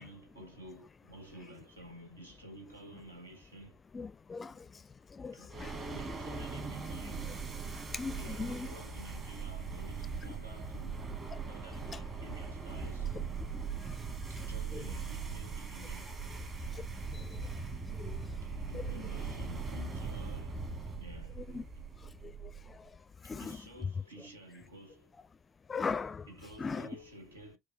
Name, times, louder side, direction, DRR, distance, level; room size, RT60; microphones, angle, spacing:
voice 1, 0.0-3.8 4.5-4.7 5.3-7.3 8.1-11.1 11.4-13.7 14.3-16.4 17.1-17.4 18.1-21.7 23.2-25.1 26.3-27.6, right 1 dB, 80° right, 0.9 m, -52 dB
voice 2, 3.9-4.8 5.1-5.9 7.9-8.7 13.1-13.2 13.5-14.0 14.7-14.8 16.7-16.8 17.1-17.6 17.9-18.3 21.4-21.6 22.0-22.9 23.2-23.6 25.7-26.3 26.6-26.9, left 5 dB, 25° left, 0.4 m, -40 dB
sound 1, 5.5-22.9, right 5 dB, 30° right, 1.2 m, -40 dB
4.8 x 2.2 x 3.2 m
figure-of-eight pair, 65°, 0 cm